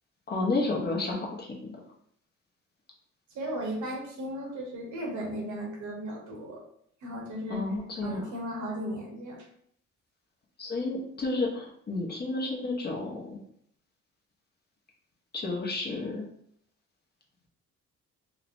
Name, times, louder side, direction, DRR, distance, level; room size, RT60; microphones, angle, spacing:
voice 1, 0.3-1.8 7.5-8.3 10.6-13.4 15.3-16.2, left 3 dB, 35° left, -2 dB, 0.7 m, -31 dB
voice 2, 3.3-6.6 7.0-7.6 8.0-9.5, equal, 70° right, 0 dB, 1.0 m, -36 dB
3.1 x 2.0 x 2.5 m, 0.67 s
cardioid pair, 90°, 30 cm